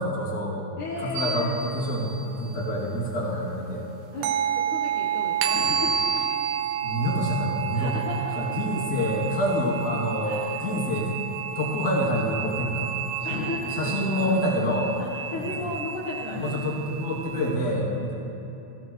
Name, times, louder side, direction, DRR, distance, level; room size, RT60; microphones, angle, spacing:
voice 1, 0.0-0.7 1.0-3.9 6.8-8.0 8.3-11.1 11.5-13.0 13.6-14.9 16.4-18.1, equal, 35° left, -6 dB, 1.7 m, -27 dB
voice 2, 0.8-1.5 4.1-6.2 7.7-8.6 10.2-10.6 13.2-14.4 15.0-16.7, left 2 dB, 85° left, -5 dB, 1.7 m, -34 dB
sound 1, 1.2-2.6 4.2-17.6, right 8 dB, 85° right, 2.9 m, -30 dB
21.0 x 15.5 x 3.2 m, 2.9 s
omnidirectional pair, 5.8 m